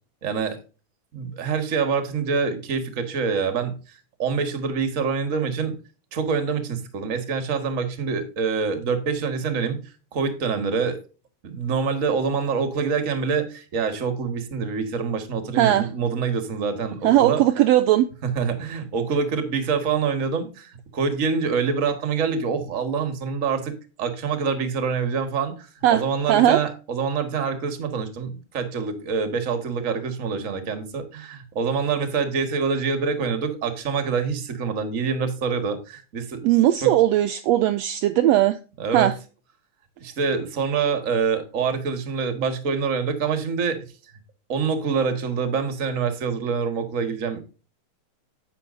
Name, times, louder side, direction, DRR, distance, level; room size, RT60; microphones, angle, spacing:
voice 1, 0.2-0.6 1.1-3.8 4.2-5.7 6.1-9.8 10.1-11.0 11.4-17.4 18.2-23.7 24.0-36.5 36.8-36.9 38.8-39.1 40.0-43.8 44.5-47.4, right 5 dB, 35° right, 1.4 m, -26 dB
voice 2, 15.6-15.9 17.0-18.1 25.8-26.0 26.3-26.6 36.4-38.6 38.9-39.1, right 13 dB, 80° right, 1.6 m, -18 dB
10.0 x 8.3 x 2.6 m
omnidirectional pair, 3.4 m